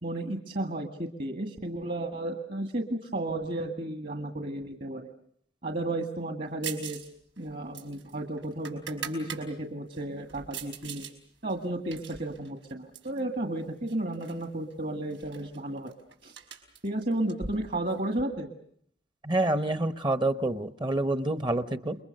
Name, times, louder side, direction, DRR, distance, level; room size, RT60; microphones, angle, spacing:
voice 1, 0.0-5.0 5.6-7.0 7.4-11.1 11.4-15.9 16.2-16.3 16.8-18.5, right 1 dB, 45° right, 6 dB, 1.9 m, -33 dB
sound 1, 6.6-7.1 7.4-9.4 9.9-11.1 11.5-13.2 13.9-14.5 14.7-14.8 15.1-18.2, right 7 dB, 85° right, 5.0 m, -42 dB
voice 2, 19.2-22.0, right 2 dB, 25° right, 11 dB, 1.0 m, -27 dB
29.0 x 23.0 x 6.6 m, 0.66 s
head